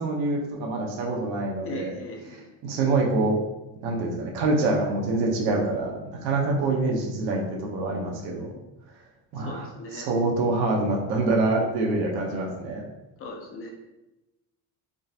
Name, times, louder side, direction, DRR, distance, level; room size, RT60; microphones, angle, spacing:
voice 1, 0.0-1.9 2.6-3.4 3.8-8.5 9.3-9.6 9.9-12.8, right 2 dB, 85° right, -1 dB, 0.8 m, -25 dB
voice 2, 1.6-2.6 9.3-10.5 13.2-13.7, left 2 dB, 35° left, 2 dB, 0.4 m, -39 dB
3.7 x 2.4 x 2.7 m, 0.98 s
cardioid pair, 180°, 38 cm